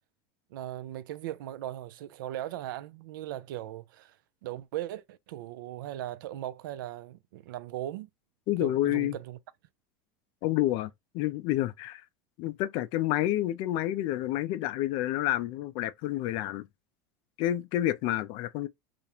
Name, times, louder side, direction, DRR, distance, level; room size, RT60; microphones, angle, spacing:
voice 1, 0.5-4.2 4.4-8.1 8.6-9.4, right 13 dB, 85° right, 0.4 m, -38 dB
voice 2, 8.5-9.2 10.4-12.0 12.4-16.7 17.4-18.7, left 14 dB, 50° left, 0.4 m, -29 dB
2.4 x 2.1 x 2.9 m
supercardioid pair, 140°, 11 cm